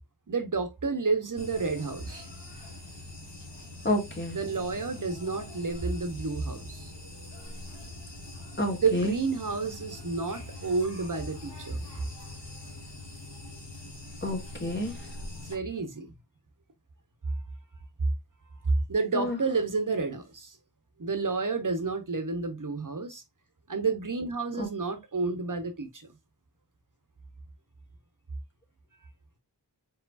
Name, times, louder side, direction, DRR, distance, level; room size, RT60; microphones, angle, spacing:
voice 1, 0.3-2.2 4.3-6.9 8.8-11.8 15.4-16.1 18.9-20.6 21.0-23.2 23.7-26.1, right 4 dB, 45° right, 1.1 m, -30 dB
sound 1, 1.4-15.6, left 2 dB, 75° left, 1.4 m, -43 dB
voice 2, 3.8-4.4 8.6-9.1 14.2-14.9 19.1-19.4 24.6-24.7, left 1 dB, 25° left, 1.6 m, -29 dB
4.7 x 3.6 x 2.6 m
wide cardioid pair, 50°, 42 cm